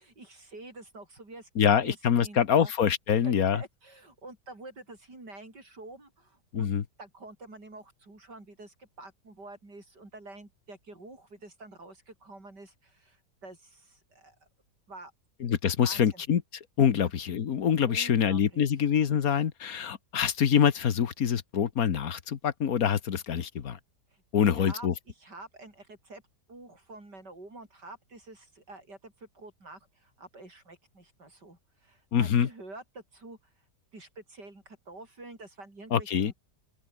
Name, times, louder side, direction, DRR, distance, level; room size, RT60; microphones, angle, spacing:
voice 1, 0.0-2.7 3.2-6.7 7.0-14.4 14.9-15.1 15.8-16.2 17.0-17.1 17.9-18.6 24.1-26.2 26.5-33.4 33.9-36.3, right 2 dB, 90° right, 7.4 m, -48 dB
voice 2, 1.6-3.6 6.5-6.8 15.4-16.4 16.8-23.8 24.3-24.9 32.1-32.5 35.9-36.3, left 8 dB, 60° left, 1.6 m, -25 dB
open air
omnidirectional pair, 1.8 m